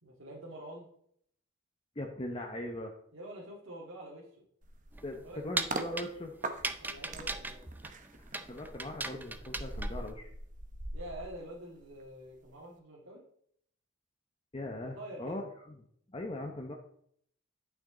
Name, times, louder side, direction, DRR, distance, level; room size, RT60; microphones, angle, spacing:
voice 1, 0.0-0.9 3.1-4.4 5.2-5.4 6.8-7.6 10.9-13.2 14.8-15.4, right 1 dB, 85° right, -5 dB, 2.2 m, -46 dB
voice 2, 2.0-2.9 5.0-6.3 8.1-10.3 14.5-16.7, left 1 dB, 30° left, 1 dB, 0.9 m, -40 dB
sound 1, 4.6-5.9 6.4-12.0 12.3-12.6, right 2 dB, 40° right, 0.9 m, -42 dB
sound 2, 4.9-10.1, right 2 dB, 10° right, 0.5 m, -38 dB
11.0 x 6.2 x 3.9 m, 0.68 s
head